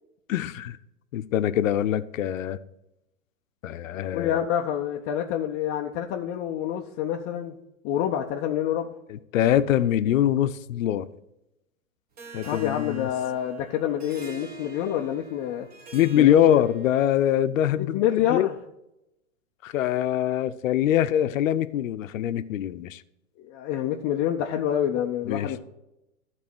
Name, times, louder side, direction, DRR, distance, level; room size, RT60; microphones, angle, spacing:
voice 1, 0.3-0.8 1.1-2.6 3.6-4.5 9.1-11.1 12.3-13.1 15.9-18.0 18.3-18.5 19.6-23.0 25.2-25.5, left 11 dB, 70° left, 0.7 m, -23 dB
voice 2, 4.1-7.6 7.8-8.9 12.4-15.7 16.2-16.6 17.8-18.5 23.4-25.6, left 10 dB, 25° left, 0.5 m, -27 dB
Harp, 12.2-17.2, right 5 dB, 20° right, 1.0 m, -46 dB
12.5 x 4.1 x 6.0 m
hypercardioid pair, 130°, 41 cm